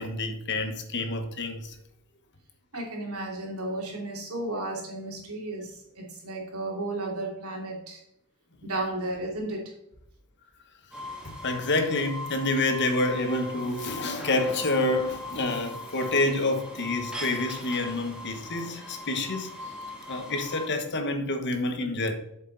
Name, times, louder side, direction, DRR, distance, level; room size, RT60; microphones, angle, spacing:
voice 1, 0.0-1.7 11.2-19.5 20.1-22.1, left 2 dB, 55° left, 1.3 m, -28 dB
voice 2, 2.7-8.0 8.6-9.6, right 2 dB, 75° right, 2.9 m, -33 dB
sound 1, 10.9-20.7, left 1 dB, 5° right, 1.9 m, -40 dB
8.2 x 7.0 x 4.1 m
head